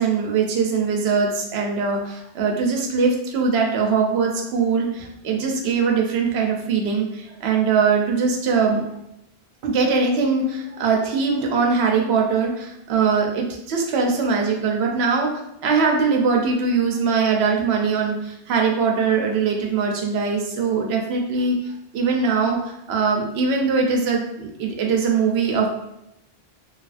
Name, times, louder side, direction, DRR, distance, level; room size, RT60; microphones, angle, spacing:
voice 1, 0.0-7.1 7.4-8.8 9.6-15.3 15.6-18.2 18.5-21.6 21.9-25.7, right 5 dB, 85° right, 1 dB, 0.8 m, -21 dB
3.0 x 2.4 x 2.4 m, 0.83 s
omnidirectional pair, 1.0 m